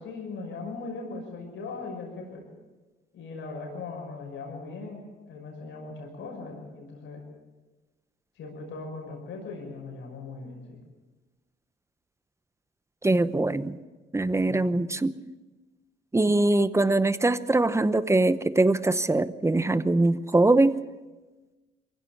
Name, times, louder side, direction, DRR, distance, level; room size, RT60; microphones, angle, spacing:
voice 1, 0.0-2.4 3.1-7.2 8.3-10.8 14.5-15.0, left 3 dB, 75° left, 0 dB, 6.0 m, -39 dB
voice 2, 13.0-13.8 14.1-15.1 16.1-20.8, right 2 dB, 15° right, 14 dB, 0.9 m, -22 dB
23.0 x 16.0 x 7.3 m, 1.2 s
cardioid pair, 90°, 20 cm